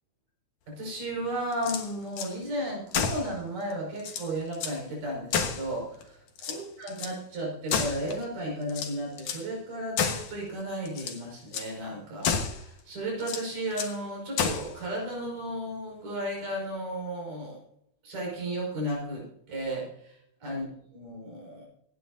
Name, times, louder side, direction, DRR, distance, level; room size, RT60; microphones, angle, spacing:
voice 1, 0.7-6.1 6.5-17.6 18.0-19.9 20.4-20.7 20.9-21.7, right 1 dB, 85° right, -2 dB, 7.0 m, -34 dB
sound 1, 1.5-2.3 2.9-3.3 3.7-3.8 4.0-4.8 5.3-6.0 6.4-7.2 7.7-8.3 8.7-9.5 10.0-10.3 10.9-11.2 11.5-11.7 12.2-12.6 13.2-14.0 14.4-14.7, left 6 dB, 80° left, 2.9 m, -31 dB
25.0 x 9.7 x 2.7 m, 0.70 s
omnidirectional pair, 3.7 m